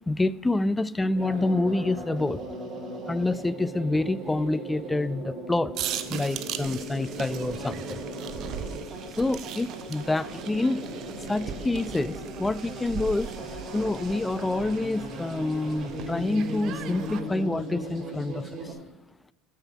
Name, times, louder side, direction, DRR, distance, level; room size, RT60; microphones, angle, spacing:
voice 1, 0.1-2.4 3.1-5.7 6.1-8.0 9.2-10.9 11.2-13.3 13.7-18.7, left 2 dB, 10° left, 19 dB, 0.3 m, -27 dB
sound 1, 1.1-18.7, equal, 35° right, 3.1 m, -38 dB
sound 2, 5.7-17.2, right 9 dB, 55° right, 0.6 m, -39 dB
6.7 x 5.7 x 7.1 m, 1.0 s
hypercardioid pair, 90°, 0 cm